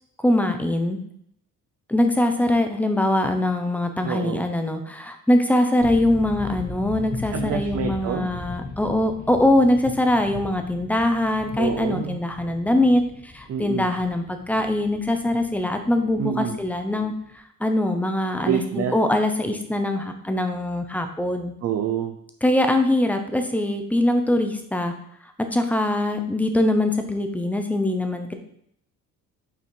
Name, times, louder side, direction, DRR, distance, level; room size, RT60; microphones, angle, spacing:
voice 1, 0.2-1.0 1.9-21.5 22.4-24.9 25.5-28.3, left 1 dB, 5° left, 6 dB, 0.5 m, -22 dB
voice 2, 4.0-4.4 7.3-8.3 11.6-12.2 13.5-13.9 16.2-16.6 18.4-19.0 21.6-22.2, right 8 dB, 45° right, 5 dB, 0.5 m, -27 dB
sound 1, 5.8-17.3, left 3 dB, 30° left, 1.0 m, -38 dB
5.8 x 4.2 x 4.5 m, 0.69 s
cardioid pair, 145°, 34 cm